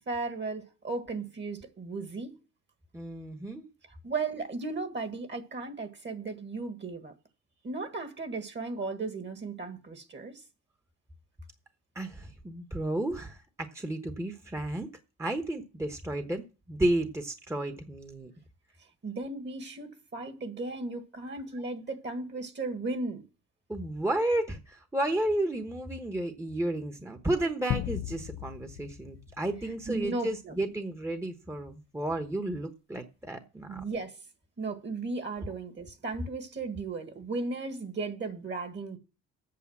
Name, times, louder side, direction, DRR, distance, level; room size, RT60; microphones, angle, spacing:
voice 1, 0.1-2.4 3.9-7.1 7.6-10.4 19.0-23.3 29.9-30.6 33.7-34.2 34.6-39.0, right 3 dB, 35° right, 1.7 m, -36 dB
voice 2, 2.9-3.7 11.9-14.9 15.2-18.3 23.7-33.8, right 1 dB, 10° right, 1.1 m, -32 dB
sound 1, 27.7-30.2, left 15 dB, 65° left, 0.5 m, -36 dB
8.6 x 6.7 x 7.2 m
cardioid pair, 90°, 30 cm